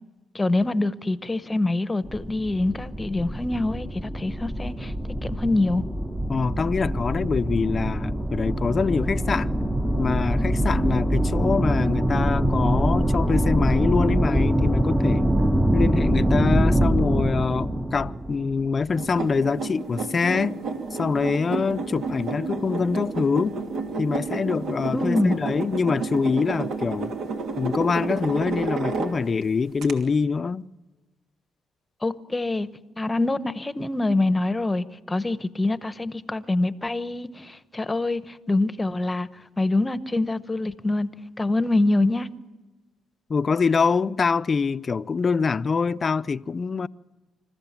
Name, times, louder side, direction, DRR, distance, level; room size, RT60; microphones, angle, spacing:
voice 1, 0.3-4.9 5.2-5.8 24.9-25.3 32.0-32.7 33.0-39.3 39.6-41.1 41.4-42.3, left 2 dB, 20° left, 0.9 m, -25 dB
sound 1, 2.0-19.1, right 1 dB, 10° right, 0.9 m, -24 dB
voice 2, 6.3-9.5 10.0-15.3 15.7-20.6 20.9-23.6 24.0-27.1 27.6-30.7 43.3-46.9, left 5 dB, 40° left, 0.5 m, -24 dB
sound 2, 18.9-29.4 29.8-29.9, right 4 dB, 75° right, 2.6 m, -31 dB
26.5 x 14.5 x 7.4 m
cardioid pair, 90°, 0 cm